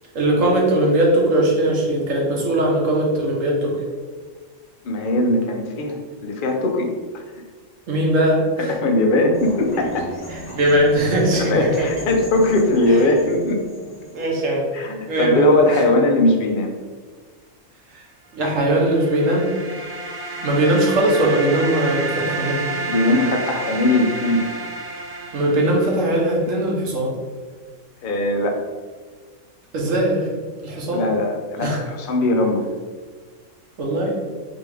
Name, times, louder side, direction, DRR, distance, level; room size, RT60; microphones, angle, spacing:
voice 1, 0.1-3.8 7.9-8.8 10.3-11.9 12.9-13.0 14.1-14.6 15.1-15.8 17.9-18.0 18.3-19.5 20.4-22.6 25.3-27.1 29.7-30.3 30.6-31.1 31.6-31.8 33.8-34.1, right 1 dB, 85° right, -2 dB, 1.3 m, -20 dB
voice 2, 4.8-6.9 8.6-10.1 11.3-13.6 14.7-16.7 22.9-24.5 28.0-28.6 30.9-32.7, left 1 dB, 55° left, 3 dB, 0.7 m, -20 dB
sound 1, 9.3-14.4, equal, 20° left, 1.0 m, -37 dB
sound 2, 18.6-26.3, right 3 dB, 55° right, 0.7 m, -30 dB
4.0 x 3.6 x 3.4 m, 1.5 s
omnidirectional pair, 1.3 m